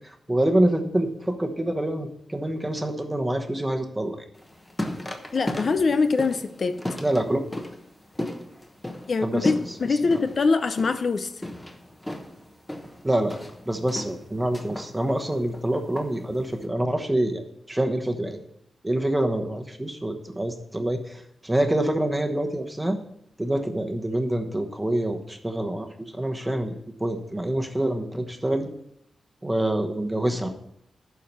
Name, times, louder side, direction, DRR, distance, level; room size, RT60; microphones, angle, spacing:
voice 1, 0.3-4.2 7.0-7.5 9.2-9.5 13.0-13.4 13.7-18.4 18.8-23.0 23.4-28.7 29.4-30.5, right 1 dB, 10° right, 4 dB, 1.1 m, -26 dB
sound 1, 4.3-16.6, left 1 dB, 15° left, 1.1 m, -36 dB
voice 2, 5.3-6.7 9.1-11.4, left 4 dB, 50° left, 10 dB, 0.5 m, -23 dB
11.5 x 4.7 x 5.4 m, 0.73 s
wide cardioid pair, 110°, 0 cm